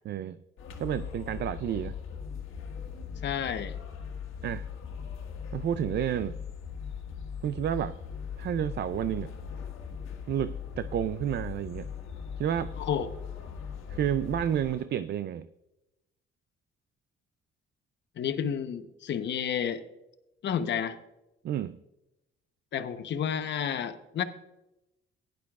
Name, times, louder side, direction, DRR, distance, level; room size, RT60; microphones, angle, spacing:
voice 1, 0.0-0.4 0.8-1.9 4.4-4.7 5.5-6.4 7.4-8.0 8.4-9.3 10.3-11.9 12.4-12.7 13.9-15.5 21.4-21.8, right 10 dB, 60° right, 13 dB, 0.4 m, -30 dB
sound 1, 0.6-14.8, left 7 dB, 80° left, 1.5 m, -39 dB
voice 2, 3.2-3.8 12.8-13.1 18.2-19.8 20.4-21.0 22.7-24.2, left 8 dB, 65° left, 10 dB, 0.9 m, -31 dB
16.0 x 10.5 x 2.4 m, 0.93 s
cardioid pair, 90°, 20 cm